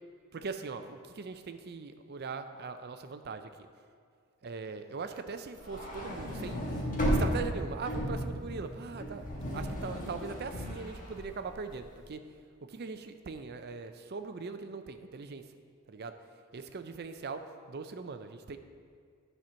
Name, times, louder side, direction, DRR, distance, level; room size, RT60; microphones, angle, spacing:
voice 1, 0.3-3.5 4.4-6.6 7.1-9.2 9.5-12.2 12.7-15.4 15.9-16.1 16.5-18.6, right 4 dB, 45° right, 9 dB, 0.5 m, -40 dB
sound 1, 5.6-11.9, equal, 35° left, 1.4 m, -34 dB
9.9 x 4.5 x 6.2 m, 2.1 s
head